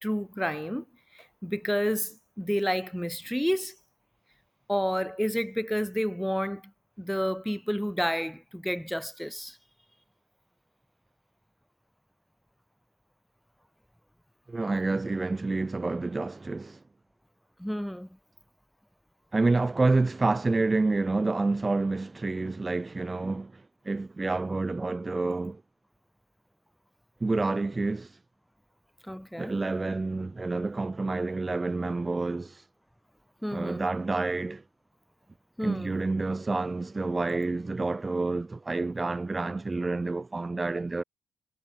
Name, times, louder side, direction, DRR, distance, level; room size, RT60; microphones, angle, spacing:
voice 1, 0.0-0.8 1.1-3.7 4.7-6.6 7.0-9.6 17.6-18.1 29.1-29.6 33.4-33.9 35.6-36.0, equal, ahead, 3.2 m, -30 dB
voice 2, 14.5-16.8 19.3-25.6 27.2-28.1 29.4-32.6 33.5-34.6 35.6-41.0, right 3 dB, 25° right, 2.1 m, -28 dB
hypercardioid pair, 45°, 0 cm